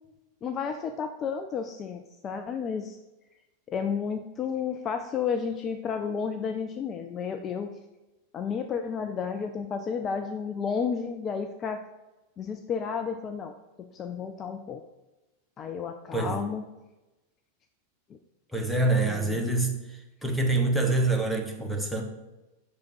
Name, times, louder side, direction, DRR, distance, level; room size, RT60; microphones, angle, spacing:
voice 1, 0.4-3.0 3.7-7.8 8.3-11.8 12.4-13.5 13.9-14.8 15.6-16.6 19.0-19.4, left 6 dB, 30° left, 7 dB, 0.3 m, -32 dB
voice 2, 16.1-16.4 18.5-19.7 20.2-22.0, right 2 dB, ahead, 2 dB, 0.9 m, -25 dB
6.1 x 3.5 x 4.6 m, 1.1 s
figure-of-eight pair, 90°, 0 cm